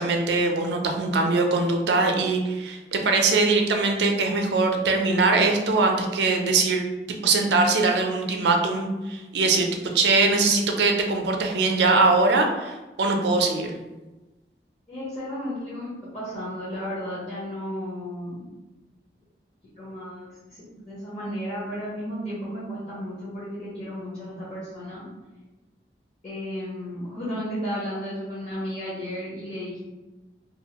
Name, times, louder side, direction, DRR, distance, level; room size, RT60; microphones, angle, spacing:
voice 1, 0.0-13.7, right 3 dB, 80° right, 3 dB, 0.4 m, -22 dB
voice 2, 14.9-18.5 19.8-25.0 26.2-29.8, equal, 35° left, -10 dB, 0.9 m, -33 dB
2.6 x 2.5 x 2.9 m, 1.1 s
head